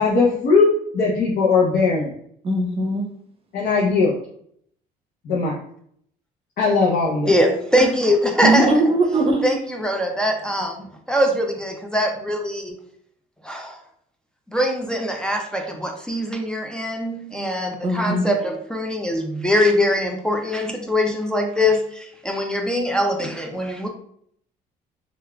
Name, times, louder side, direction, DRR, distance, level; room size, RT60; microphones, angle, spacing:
voice 1, 0.0-2.1 3.5-4.2 5.2-5.6 6.6-7.3, left 4 dB, 60° left, -5 dB, 0.7 m, -19 dB
voice 2, 2.4-3.1 8.4-9.4 17.8-18.3, right 2 dB, 35° right, 2 dB, 0.7 m, -20 dB
voice 3, 7.3-8.7 9.4-12.8 13.4-13.7 14.5-23.9, left 1 dB, 5° left, 1 dB, 0.4 m, -22 dB
3.4 x 2.3 x 2.2 m, 0.66 s
cardioid pair, 110°, 17 cm